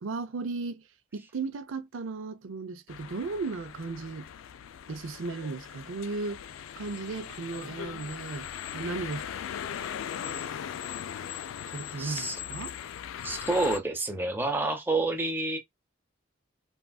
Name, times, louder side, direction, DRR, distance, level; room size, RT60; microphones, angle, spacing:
voice 1, 0.0-0.9 1.1-4.3 4.9-6.4 6.8-8.5 8.7-9.2 11.7-12.8, right 3 dB, 80° right, 0.5 m, -35 dB
sound 1, 2.9-13.8, left 9 dB, 85° left, 0.3 m, -39 dB
voice 2, 12.0-12.3 13.2-15.6, right 2 dB, 10° right, 0.6 m, -28 dB
3.5 x 2.4 x 2.3 m
head